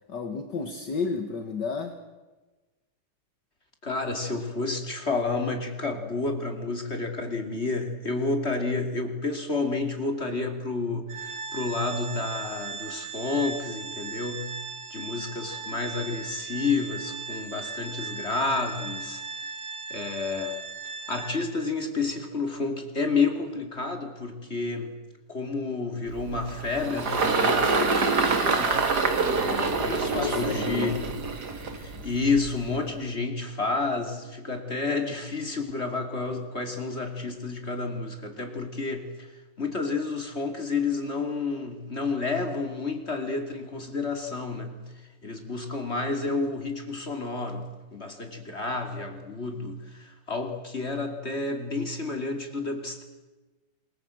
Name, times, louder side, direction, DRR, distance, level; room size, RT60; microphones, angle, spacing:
voice 1, 0.1-1.9 29.6-31.0, left 4 dB, 45° left, 6 dB, 1.6 m, -32 dB
voice 2, 3.8-14.6 14.9-19.5 19.9-20.6 21.1-24.9 25.3-53.0, left 3 dB, 20° left, 4 dB, 2.6 m, -30 dB
Organ, 11.1-21.7, right 4 dB, 80° right, 4.6 m, -38 dB
Engine, 26.1-32.7, right 4 dB, 35° right, 2.3 m, -26 dB
28.0 x 21.0 x 7.8 m, 1.2 s
omnidirectional pair, 3.7 m